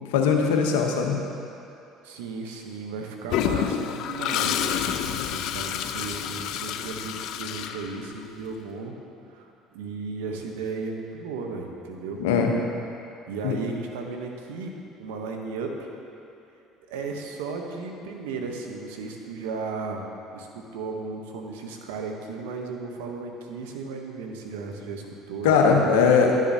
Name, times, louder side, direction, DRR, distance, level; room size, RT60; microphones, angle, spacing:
voice 1, 0.1-1.2 12.2-12.5 13.4-13.6 25.4-26.3, left 6 dB, 80° left, 2 dB, 0.8 m, -20 dB
voice 2, 2.0-8.9 9.3-12.2 13.3-14.7 15.0-15.9 16.9-20.0 20.3-26.2, right 4 dB, 85° right, 2 dB, 0.8 m, -35 dB
Toilet flush, 3.3-8.4, left 9 dB, 65° left, 0.3 m, -29 dB
11.0 x 7.3 x 2.7 m, 2.7 s
hypercardioid pair, 70°, 0 cm